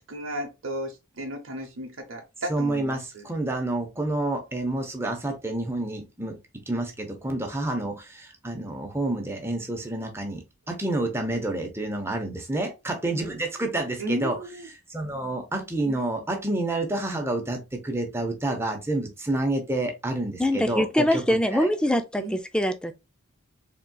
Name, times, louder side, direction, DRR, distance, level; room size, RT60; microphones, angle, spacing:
voice 1, 0.1-3.3 14.0-14.7 15.8-16.0 22.2-22.4, right 1 dB, 65° right, 0.8 m, -34 dB
voice 2, 2.5-6.4 6.7-14.4 14.9-21.2 21.5-21.7, right 2 dB, 10° right, 0.8 m, -29 dB
voice 3, 20.4-22.9, left 1 dB, 5° left, 0.3 m, -23 dB
4.1 x 3.6 x 2.3 m
head